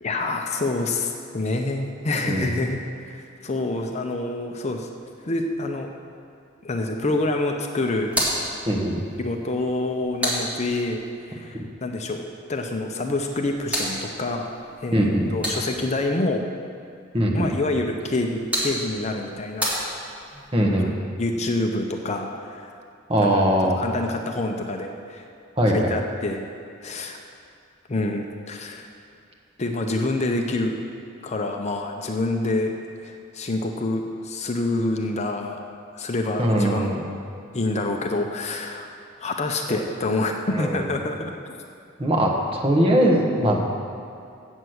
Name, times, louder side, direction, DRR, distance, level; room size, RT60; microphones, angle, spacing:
voice 1, 0.0-4.9 5.2-5.9 6.6-8.2 9.2-14.5 14.8-16.4 17.3-19.7 20.8-20.9 21.2-22.7 23.2-23.4 23.8-25.3 25.7-26.4 26.8-27.2 27.9-28.9 29.6-30.8 31.2-32.7 33.0-35.6 35.9-36.9 37.5-38.9 39.2-41.5, left 2 dB, 35° left, 3 dB, 0.6 m, -27 dB
sound 1, 8.0-11.1 13.1-16.0 18.0-20.5, equal, 5° right, 1.9 m, -31 dB
voice 2, 14.9-15.3 17.1-17.5 20.5-20.9 23.1-23.8 25.6-26.0 36.4-37.0 39.7-39.8 40.5-40.8 42.0-43.7, right 1 dB, 25° right, -1 dB, 1.1 m, -21 dB
8.1 x 6.1 x 7.8 m, 2.4 s
head